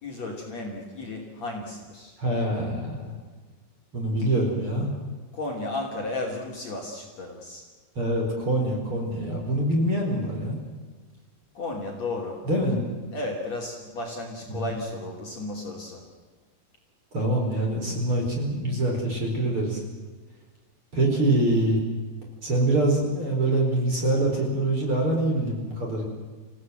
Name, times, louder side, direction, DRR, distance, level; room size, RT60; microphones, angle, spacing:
voice 1, 0.0-2.1 5.3-7.7 11.5-12.4 13.1-16.0, left 2 dB, 40° left, -1 dB, 3.7 m, -34 dB
voice 2, 2.2-3.1 3.9-4.9 8.0-10.6 12.5-12.8 14.5-14.6 17.1-19.8 20.9-21.8 22.4-26.0, right 1 dB, 30° right, 0 dB, 5.4 m, -25 dB
28.5 x 16.5 x 7.9 m, 1.4 s
omnidirectional pair, 5.0 m